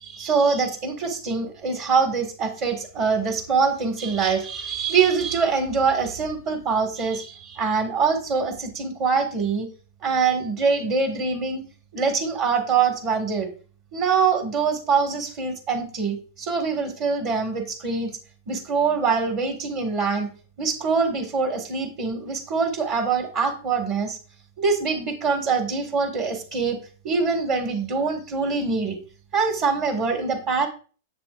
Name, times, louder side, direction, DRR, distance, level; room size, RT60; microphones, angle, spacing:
voice 1, 0.0-9.7 10.0-11.7 11.9-13.5 13.9-18.2 18.5-20.3 20.6-24.2 24.6-26.8 27.0-29.0 29.3-30.7, right 5 dB, 40° right, 5 dB, 1.8 m, -24 dB
8.7 x 7.7 x 2.5 m, 0.38 s
hypercardioid pair, 125°, 0 cm